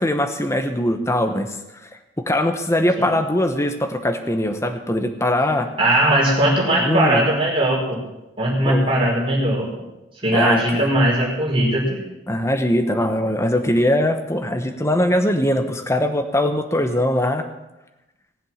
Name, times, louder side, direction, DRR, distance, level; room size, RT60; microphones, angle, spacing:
voice 1, 0.0-1.6 2.2-5.7 6.8-7.2 8.7-8.9 10.3-10.9 12.3-17.5, left 1 dB, 15° left, 6 dB, 1.0 m, -21 dB
voice 2, 5.8-8.0 8.4-9.8 10.2-12.0, right 1 dB, 25° right, -4 dB, 4.8 m, -19 dB
18.5 x 7.9 x 7.2 m, 0.99 s
head